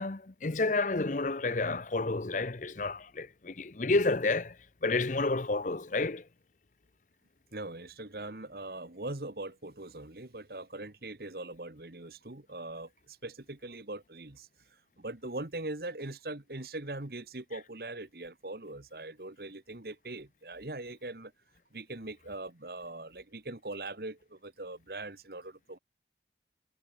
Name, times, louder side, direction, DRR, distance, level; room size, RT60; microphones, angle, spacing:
voice 1, 0.0-4.6 4.8-6.2, left 3 dB, 45° left, 0.8 m, -30 dB
voice 2, 7.5-21.3 21.7-25.8, right 2 dB, 55° right, 1.6 m, -41 dB
head